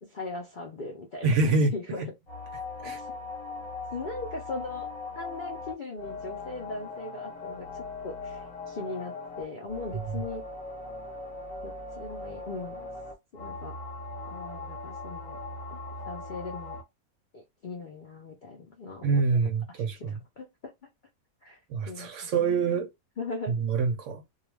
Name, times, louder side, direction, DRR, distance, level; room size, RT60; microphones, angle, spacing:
voice 1, 0.0-2.0 2.8-3.1 3.9-4.9 5.2-10.5 11.6-12.9 13.3-13.8 14.2-15.4 15.7-15.8 16.1-16.8 17.3-19.2 19.7-20.7 21.4-21.6 21.8-22.9 23.2-23.6, left 3 dB, 60° left, 0.5 m, -39 dB
voice 2, 1.2-1.7 2.0-2.1 2.8-3.0 9.9-10.2 19.0-20.1 21.7-22.9 23.5-24.2, right 4 dB, 65° right, 0.8 m, -26 dB
sound 1, 2.3-16.8, left 3 dB, 35° left, 0.9 m, -39 dB
2.3 x 2.3 x 3.1 m
omnidirectional pair, 1.6 m